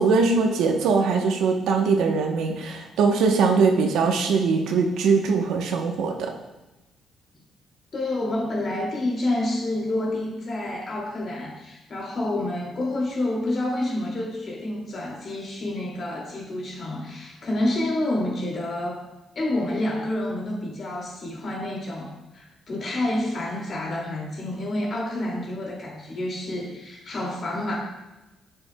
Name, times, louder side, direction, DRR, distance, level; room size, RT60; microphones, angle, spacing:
voice 1, 0.0-6.3, right 4 dB, 85° right, 3 dB, 0.9 m, -21 dB
voice 2, 7.9-19.0 19.3-27.8, left 1 dB, 50° left, -2 dB, 2.3 m, -28 dB
8.5 x 6.8 x 2.2 m, 1.0 s
cardioid pair, 90°, 0 cm